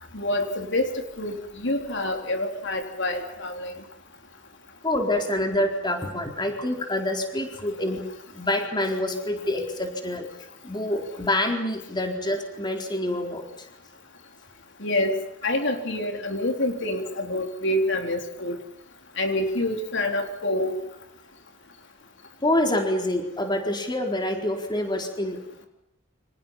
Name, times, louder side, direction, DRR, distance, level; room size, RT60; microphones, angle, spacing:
voice 1, 0.1-3.8 14.8-15.2 15.4-18.6 19.2-20.8, left 1 dB, 65° left, 4 dB, 3.9 m, -27 dB
voice 2, 4.8-8.0 8.3-10.3 10.6-13.7 22.4-25.7, left 1 dB, 20° left, 3 dB, 4.2 m, -26 dB
29.5 x 26.5 x 5.7 m, 0.79 s
head